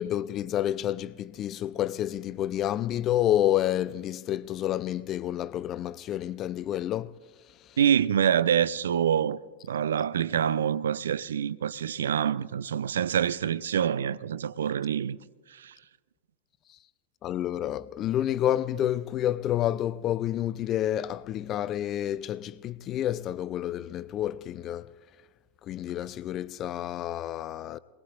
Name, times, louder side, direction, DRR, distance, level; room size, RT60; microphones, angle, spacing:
voice 1, 0.0-7.2 17.2-25.0 25.6-27.8, left 12 dB, 30° left, 0.4 m, -29 dB
voice 2, 7.8-9.4 9.7-15.2 15.5-15.7, right 9 dB, 65° right, 0.4 m, -26 dB
26.0 x 20.0 x 2.4 m
figure-of-eight pair, 90°, 0 cm